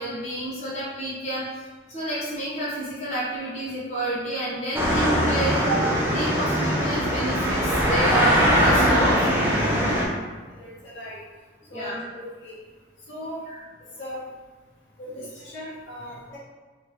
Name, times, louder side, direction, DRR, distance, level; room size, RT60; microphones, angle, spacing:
voice 1, 0.0-1.4 1.9-5.8 6.1-9.4 9.7-10.0 11.6-12.0 13.5-13.6 15.1-15.3 16.1-16.2, right 1 dB, 35° left, -9 dB, 0.9 m, -30 dB
sound 1, 4.7-10.1, equal, 10° right, 0.4 m, -21 dB
sound 2, 9.1-9.7, equal, 60° right, 1.0 m, -39 dB
voice 2, 10.5-11.2 11.7-12.5 13.1-13.5 14.0-14.2 15.0-16.4, equal, 75° left, -7 dB, 1.1 m, -38 dB
2.9 x 2.6 x 3.2 m, 1.4 s
head